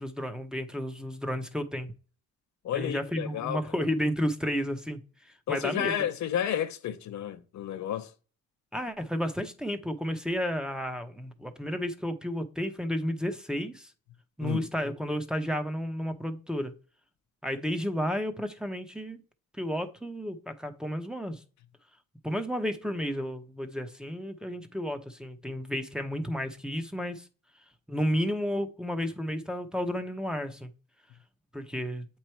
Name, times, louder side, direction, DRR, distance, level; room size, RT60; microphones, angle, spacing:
voice 1, 0.0-1.9 2.7-5.0 5.5-5.9 8.7-13.9 14.4-16.7 17.4-19.2 19.6-21.4 22.2-27.2 27.9-30.7 31.5-32.1, equal, ahead, 0.8 m, -32 dB
voice 2, 2.6-3.6 5.5-8.1 14.4-14.7, left 10 dB, 65° left, 0.7 m, -31 dB
7.9 x 3.2 x 4.4 m
cardioid pair, 90°, 30 cm